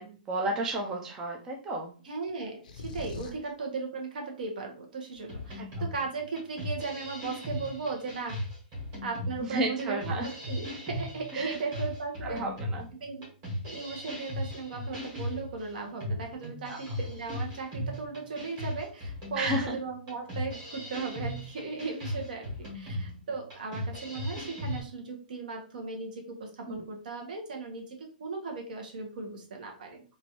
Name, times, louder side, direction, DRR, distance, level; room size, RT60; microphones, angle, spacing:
voice 1, 0.0-1.9 5.6-5.7 9.4-10.3 11.3-11.5 12.2-12.9 16.7-16.9 19.4-19.8 26.7-26.8, right 1 dB, 10° right, 0 dB, 0.3 m, -32 dB
voice 2, 2.0-8.4 9.0-12.4 13.0-13.3 13.6-30.0, right 4 dB, 65° right, 2 dB, 1.0 m, -37 dB
sound 1, 2.6-3.5, left 4 dB, 60° left, 0.5 m, -40 dB
sound 2, 5.3-24.8, equal, 25° right, 1.4 m, -37 dB
3.0 x 2.5 x 2.8 m, 0.39 s
hypercardioid pair, 170°, 5 cm